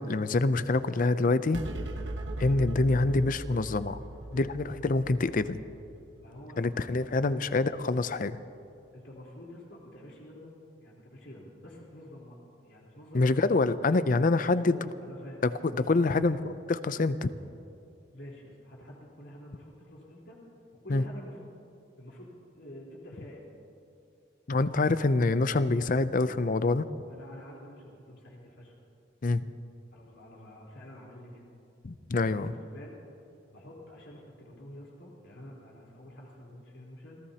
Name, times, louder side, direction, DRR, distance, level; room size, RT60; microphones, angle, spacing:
voice 1, 0.0-1.6 2.4-4.0 4.3-5.6 6.6-8.4 13.1-14.8 15.4-15.5 15.8-16.4 16.7-17.3 20.9-21.0 24.5-26.9 29.2-29.5 31.8-32.5, left 3 dB, 50° left, 14 dB, 0.5 m, -26 dB
sound 1, 1.5-8.2, right 1 dB, 90° right, 1.4 m, -40 dB
voice 2, 6.2-7.5 8.9-12.4 12.6-13.4 14.6-15.4 16.0-16.1 18.1-20.4 20.8-21.5 22.0-23.5 27.1-28.7 29.9-31.5 32.2-33.0 33.5-37.2, left 1 dB, 85° left, -4 dB, 4.0 m, -48 dB
29.5 x 15.5 x 2.9 m, 2.7 s
head